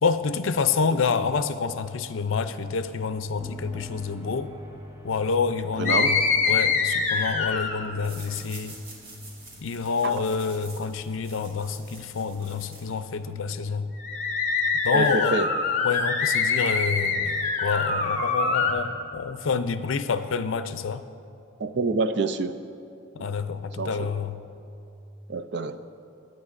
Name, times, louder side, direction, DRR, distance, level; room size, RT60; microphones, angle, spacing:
voice 1, 0.0-4.5 5.0-8.8 9.6-13.9 14.8-15.5 15.8-21.1 23.1-24.4, left 5 dB, 80° left, 11 dB, 0.5 m, -28 dB
sound 1, 3.4-19.5, left 1 dB, 10° right, 0.6 m, -48 dB
voice 2, 5.8-6.1 10.0-10.2 14.9-15.5 21.6-22.5 23.8-24.1 25.3-25.8, right 3 dB, 55° right, 11 dB, 0.4 m, -26 dB
sound 2, 5.9-7.9 14.0-18.7, left 5 dB, 35° left, 1.0 m, -24 dB
sound 3, 8.0-13.3, right 2 dB, 85° right, 2.9 m, -47 dB
21.5 x 9.2 x 2.5 m, 2.6 s
head